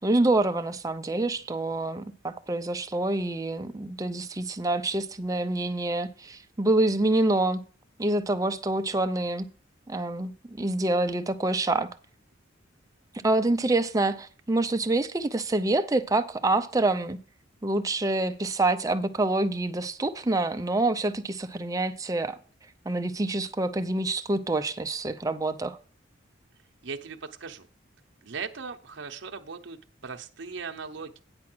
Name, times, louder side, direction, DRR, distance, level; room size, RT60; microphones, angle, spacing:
voice 1, 0.0-7.6 8.0-9.5 9.9-11.9 13.2-17.2 17.6-22.4 22.9-25.8, right 2 dB, 20° right, 0.5 m, -26 dB
voice 2, 26.8-27.7 28.2-31.2, right 5 dB, 65° right, 0.8 m, -38 dB
9.7 x 4.7 x 6.1 m
head